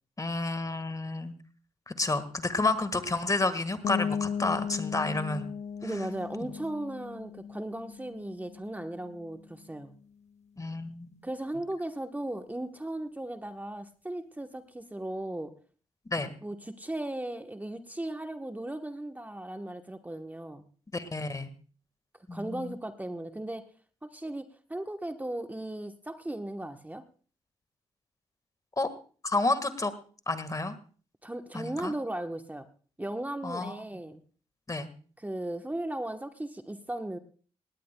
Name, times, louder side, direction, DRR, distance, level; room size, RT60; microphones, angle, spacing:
voice 1, 0.2-1.3 1.9-5.5 10.6-11.1 16.1-16.3 20.9-21.5 22.3-22.7 28.8-28.9 29.2-29.9 30.3-30.7 31.5-31.9 33.4-33.8 34.7-34.9, left 2 dB, 30° left, 12 dB, 1.6 m, -30 dB
sound 1, 3.8-9.4, left 7 dB, 65° left, 0.8 m, -36 dB
voice 2, 5.8-9.9 11.2-15.5 16.4-20.6 22.3-23.6 24.0-27.0 31.2-32.7 33.0-34.2 35.2-37.2, right 1 dB, 15° right, 7 dB, 1.0 m, -36 dB
18.5 x 17.5 x 2.2 m, 0.40 s
supercardioid pair, 50°, 12 cm